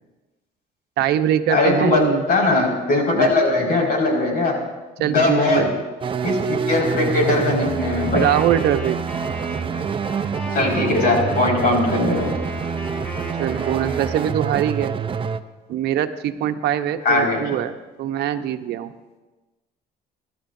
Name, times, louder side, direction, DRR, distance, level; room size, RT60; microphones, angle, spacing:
voice 1, 1.0-2.2 3.1-3.3 5.0-5.7 8.1-9.0 13.4-14.9 15.7-17.7 18.0-18.9, right 10 dB, 75° right, 8 dB, 0.9 m, -22 dB
voice 2, 1.5-2.0 2.3-4.6 5.0-5.7 6.2-8.3 10.5-12.3 17.0-17.4, left 2 dB, 65° left, -1 dB, 5.3 m, -20 dB
sound 1, 6.0-15.4, right 6 dB, 30° right, 0.6 m, -26 dB
Wind instrument woodwind instrument, 7.8-14.4, equal, 10° left, 5.1 m, -35 dB
30.0 x 12.0 x 2.7 m, 1.2 s
cardioid pair, 110°, 17 cm